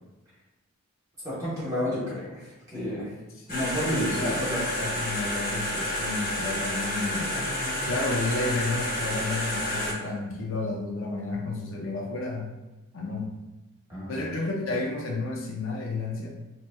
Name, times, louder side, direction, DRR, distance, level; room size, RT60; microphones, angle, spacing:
voice 1, 1.2-3.1 3.5-4.6 7.3-7.8 13.9-14.2, equal, 15° right, -8 dB, 1.0 m, -31 dB
sound 1, 3.5-9.9, left 1 dB, 45° left, 1.2 m, -30 dB
voice 2, 3.8-4.4 4.7-7.3 7.9-12.5 12.9-13.3 14.1-16.4, left 2 dB, 60° left, -1 dB, 0.5 m, -31 dB
4.8 x 2.8 x 2.2 m, 1.1 s
head